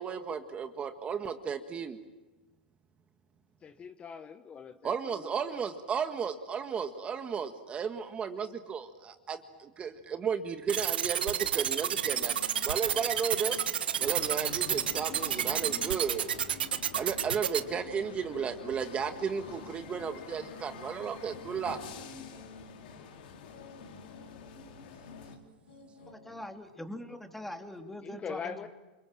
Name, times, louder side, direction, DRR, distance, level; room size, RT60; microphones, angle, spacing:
voice 1, 0.0-2.0 4.8-12.3 12.6-13.6 14.0-16.2 16.9-21.8, right 6 dB, 25° right, 8 dB, 1.7 m, -34 dB
voice 2, 3.6-5.6 28.0-28.7, left 6 dB, 20° left, 9 dB, 1.3 m, -42 dB
sound 1, 10.7-17.6, right 9 dB, 90° right, 1.7 m, -29 dB
sound 2, 11.9-26.5, left 3 dB, 85° left, 7.6 m, -52 dB
sound 3, 14.0-25.4, left 7 dB, 70° left, 3.7 m, -48 dB
voice 3, 26.1-28.7, left 1 dB, 5° left, 5 dB, 2.7 m, -42 dB
28.0 x 26.0 x 7.6 m, 1.2 s
hypercardioid pair, 125°, 5 cm